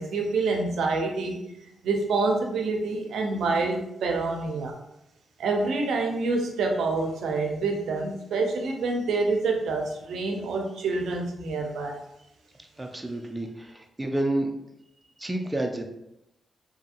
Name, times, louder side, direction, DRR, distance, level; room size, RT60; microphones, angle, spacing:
voice 1, 0.0-1.4 1.8-4.7 5.4-12.0, right 3 dB, 85° right, 2 dB, 0.4 m, -27 dB
voice 2, 12.8-14.5 15.2-15.8, right 1 dB, 15° right, 3 dB, 0.4 m, -29 dB
2.7 x 2.6 x 2.5 m, 0.82 s
cardioid pair, 70°, 0 cm